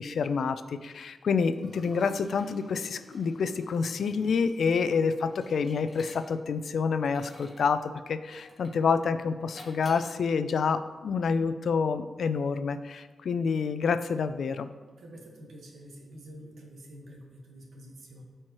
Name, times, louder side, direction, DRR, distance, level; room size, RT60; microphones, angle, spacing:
voice 1, 0.0-14.7, left 5 dB, 75° left, 11 dB, 0.4 m, -28 dB
Liquid, 1.5-6.6 7.0-7.7 8.3-8.8 9.5-10.1, left 1 dB, 10° left, 2.0 m, -50 dB
voice 2, 15.0-18.2, equal, 85° right, 1 dB, 1.4 m, -47 dB
13.0 x 4.4 x 3.0 m, 1.3 s
wide cardioid pair, 115°, 0 cm